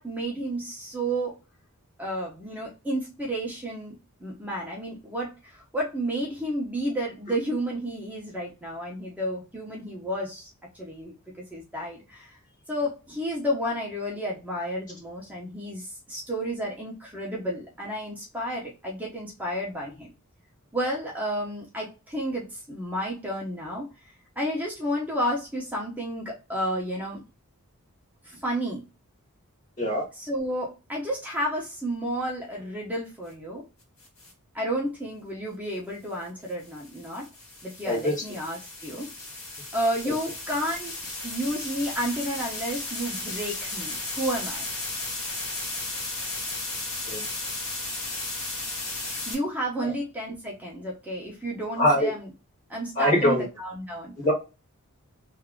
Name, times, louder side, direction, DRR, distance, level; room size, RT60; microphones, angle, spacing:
voice 1, 0.0-1.3 2.0-10.5 10.7-11.1 11.5-12.3 12.7-20.1 20.7-23.9 24.4-27.2 28.2-28.8 30.1-33.6 34.5-37.3 37.6-39.1 39.7-40.9 41.2-44.6 49.3-52.3 52.7-54.1, equal, 5° right, -4 dB, 1.0 m, -31 dB
sound 1, 34.0-34.3 36.5-49.3, left 2 dB, 70° left, 2.1 m, -35 dB
voice 2, 51.8-52.1 53.0-53.4 54.2-54.3, left 1 dB, 35° left, 0 dB, 1.6 m, -22 dB
3.4 x 2.8 x 3.7 m, 0.29 s
head